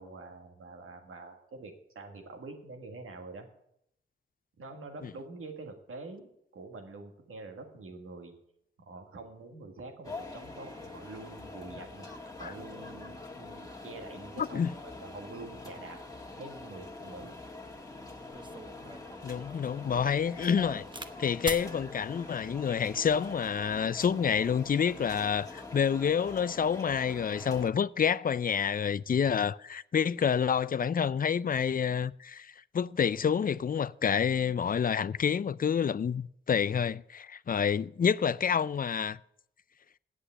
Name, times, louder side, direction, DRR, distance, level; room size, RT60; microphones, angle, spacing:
voice 1, 0.0-3.5 4.6-6.3 6.5-8.3 8.8-12.1 12.4-14.6 15.0-16.0 16.4-17.3, right 3 dB, 90° right, 1.8 m, -46 dB
sound 1, 10.0-27.7, left 2 dB, 15° left, 1.8 m, -45 dB
voice 2, 14.4-14.7 19.2-20.8 21.2-39.2, left 7 dB, 45° left, 0.4 m, -28 dB
sound 2, 17.8-17.9 18.3-21.1 21.4-21.7 22.5-22.9, right 2 dB, 20° right, 1.0 m, -42 dB
8.4 x 7.9 x 8.6 m
cardioid pair, 50°, 21 cm